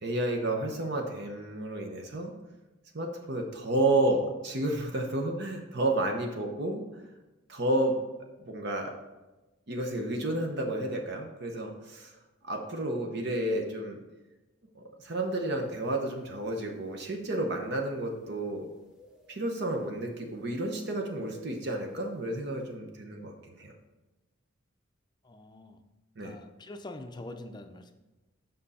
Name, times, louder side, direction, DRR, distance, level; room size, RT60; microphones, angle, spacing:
voice 1, 0.0-2.3 2.9-6.8 7.5-8.0 8.5-8.9 9.7-12.1 12.4-14.0 14.7-18.7 19.3-23.7 26.2-26.3, right 1 dB, 55° right, 2 dB, 0.9 m, -31 dB
sound 1, 15.3-15.5 16.2-16.3 18.2-19.5 19.7-20.6 21.0-22.4, left 4 dB, 5° right, 1.0 m, -50 dB
voice 2, 25.2-25.8 26.2-27.9, left 2 dB, 20° left, 7 dB, 0.5 m, -44 dB
7.7 x 5.4 x 4.2 m, 1.1 s
head